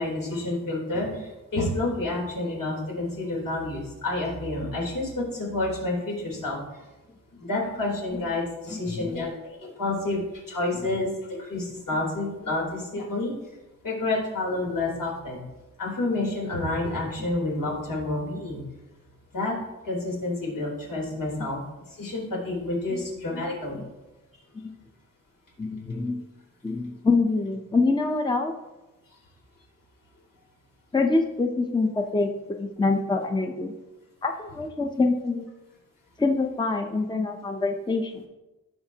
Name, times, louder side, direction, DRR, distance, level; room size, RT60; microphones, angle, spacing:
voice 1, 0.0-6.6 7.4-9.3 9.6-10.2 10.5-11.1 11.4-13.3 13.8-15.4 15.8-18.6 19.3-19.5 19.8-21.6 22.0-23.8, left 2 dB, 90° left, -4 dB, 3.5 m, -29 dB
voice 2, 8.7-9.3 10.7-10.9 21.4-21.5 22.9-23.1 23.7-23.9 24.5-24.8 25.6-26.2 26.6-28.5 30.9-33.7 34.2-35.5 36.2-38.2, left 3 dB, 15° left, 4 dB, 0.7 m, -26 dB
16.5 x 5.7 x 2.8 m, 1.0 s
wide cardioid pair, 135°, 32 cm